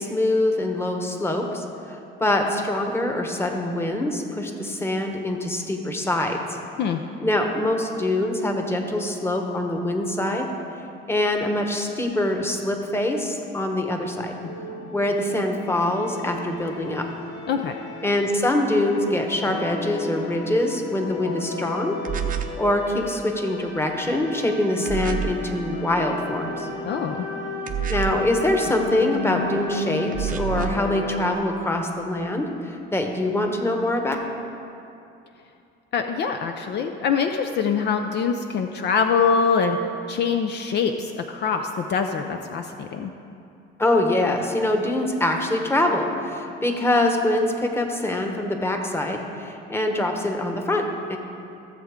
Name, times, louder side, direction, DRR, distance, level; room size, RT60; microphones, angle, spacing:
voice 1, 0.0-6.6 7.2-10.5 11.1-14.3 14.9-17.1 18.0-22.0 22.6-26.7 27.9-34.2 43.8-51.2, left 1 dB, 10° left, 3 dB, 1.2 m, -24 dB
sound 1, 14.4-31.3, left 3 dB, 80° left, 1.7 m, -34 dB
sound 2, 22.0-22.6 24.9-25.4 27.7-28.3 30.1-30.9, right 9 dB, 40° right, 0.7 m, -28 dB
voice 2, 26.8-27.3 35.9-39.8 40.1-43.1, left 6 dB, 55° left, 6 dB, 0.6 m, -24 dB
16.0 x 7.5 x 3.7 m, 2.7 s
cardioid pair, 115°, 21 cm